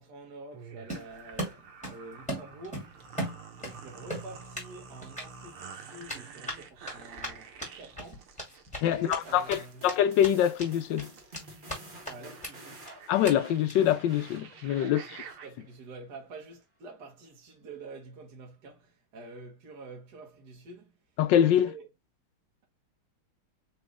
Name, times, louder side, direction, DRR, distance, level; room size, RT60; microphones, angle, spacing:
voice 1, 0.0-3.4 3.6-9.9 12.1-12.9 14.8-21.0 21.5-21.9, right 2 dB, 55° right, 1.6 m, -47 dB
sound 1, 0.5-15.5, right 6 dB, 90° right, 1.8 m, -49 dB
Run, 0.9-2.0 2.3-3.8 4.1-4.7 5.0-5.2 6.1-9.6 9.9-10.0 10.2-10.7 11.0-11.8 12.0-12.1 12.4-12.5 12.8-12.9 13.2-13.3 13.7-13.9, equal, 5° left, 2.1 m, -37 dB
voice 2, 8.8-11.1 13.1-15.0 21.2-21.7, left 10 dB, 75° left, 1.1 m, -24 dB
sound 2, 9.2-15.7, right 1 dB, 25° right, 1.5 m, -50 dB
4.2 x 3.2 x 3.4 m
omnidirectional pair, 2.3 m